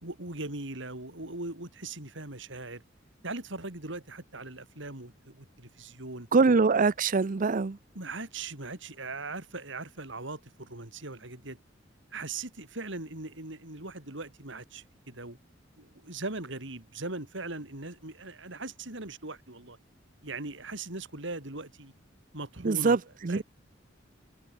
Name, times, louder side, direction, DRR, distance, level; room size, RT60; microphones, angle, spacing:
voice 1, 0.0-2.8 3.2-6.3 7.9-11.6 12.1-15.4 15.8-19.8 20.2-21.9 22.3-23.0 23.3-23.4, right 2 dB, 70° right, 4.8 m, -40 dB
voice 2, 6.3-7.8 22.6-23.4, right 4 dB, 45° right, 0.6 m, -24 dB
head